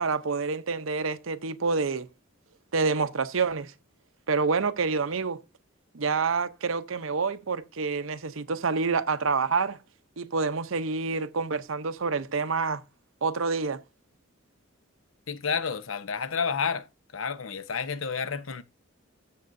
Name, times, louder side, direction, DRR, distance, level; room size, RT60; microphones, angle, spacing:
voice 1, 0.0-2.1 2.7-3.7 4.3-5.4 5.9-9.8 10.2-12.8 13.2-13.8, right 4 dB, 90° right, 0.8 m, -27 dB
voice 2, 15.3-16.8 17.1-18.6, left 6 dB, 85° left, 0.8 m, -30 dB
13.5 x 7.3 x 2.7 m
head